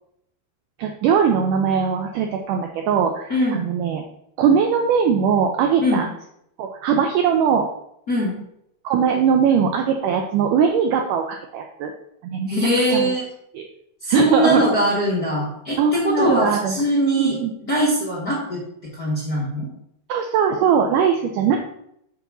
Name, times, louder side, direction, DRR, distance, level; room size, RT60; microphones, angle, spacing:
voice 1, 0.8-4.0 4.4-6.0 6.6-7.7 8.8-11.9 12.2-12.5 12.9-13.1 13.5-13.7 14.1-14.6 15.8-16.8 17.2-17.5 20.1-21.6, right 7 dB, 90° right, 4 dB, 1.8 m, -20 dB
voice 2, 3.3-3.7 5.8-6.0 8.1-8.4 12.5-13.3 14.0-18.6 18.9-19.7, equal, 50° left, -6 dB, 1.1 m, -21 dB
7.1 x 3.9 x 6.0 m, 0.75 s
omnidirectional pair, 4.5 m